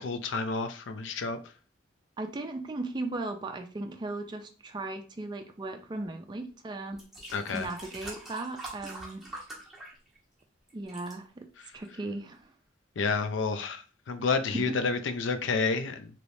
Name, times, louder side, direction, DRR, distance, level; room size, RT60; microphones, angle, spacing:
voice 1, 0.0-1.4 7.3-7.7 11.6-11.7 13.0-16.1, left 4 dB, 80° left, 9 dB, 0.4 m, -30 dB
voice 2, 2.2-7.0 7.5-9.2 10.7-11.5 11.7-12.5 14.5-14.9, right 2 dB, 25° right, 4 dB, 0.4 m, -37 dB
sound 1, 6.3-6.4 6.9-10.4 10.7-11.1 11.8-11.9, right 2 dB, ahead, 1.0 m, -44 dB
3.2 x 3.0 x 2.6 m, 0.37 s
head